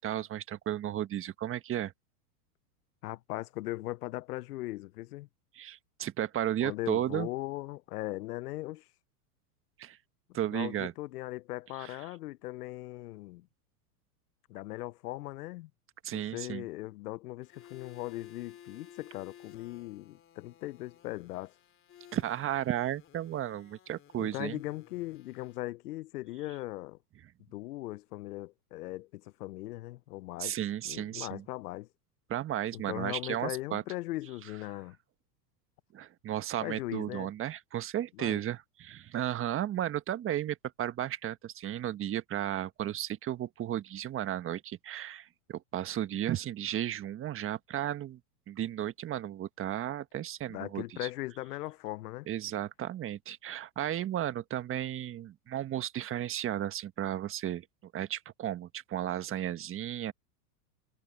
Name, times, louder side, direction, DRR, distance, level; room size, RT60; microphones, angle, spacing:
voice 1, 0.0-1.9 5.5-7.3 9.8-10.0 10.3-10.9 11.8-11.9 16.0-16.6 22.1-24.6 30.4-31.4 32.3-33.8 35.9-48.2 48.5-51.1 52.3-60.1, right 11 dB, 25° right, 1.4 m, -34 dB
voice 2, 3.0-5.3 6.6-8.9 10.5-13.5 14.5-15.7 16.1-21.5 24.2-27.0 27.5-30.6 30.8-31.9 32.7-35.0 36.6-37.3 38.1-38.4 50.5-52.3, left 18 dB, 70° left, 0.8 m, -39 dB
sound 1, 17.4-25.6, left 10 dB, 25° left, 3.0 m, -56 dB
hypercardioid pair, 115°, 47 cm